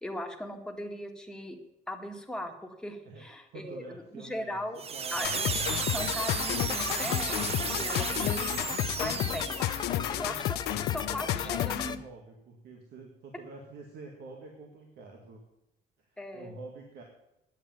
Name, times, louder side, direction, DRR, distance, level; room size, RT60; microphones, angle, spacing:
voice 1, 0.0-1.6 1.9-4.8 5.1-5.5 5.9-8.6 8.9-9.6 10.1-10.6 10.9-12.0 16.2-16.6, left 1 dB, 5° left, 2 dB, 1.9 m, -38 dB
voice 2, 3.0-4.6 4.9-5.3 9.7-15.4 16.0-17.0, right 3 dB, 70° right, 1 dB, 2.1 m, -47 dB
sound 1, 4.8-10.0, right 6 dB, 35° right, 0.8 m, -34 dB
sound 2, 5.2-12.0, left 13 dB, 75° left, 0.7 m, -32 dB
sound 3, 5.6-12.0, left 6 dB, 25° left, 0.5 m, -39 dB
10.0 x 8.1 x 9.1 m, 0.89 s
cardioid pair, 110°, 17 cm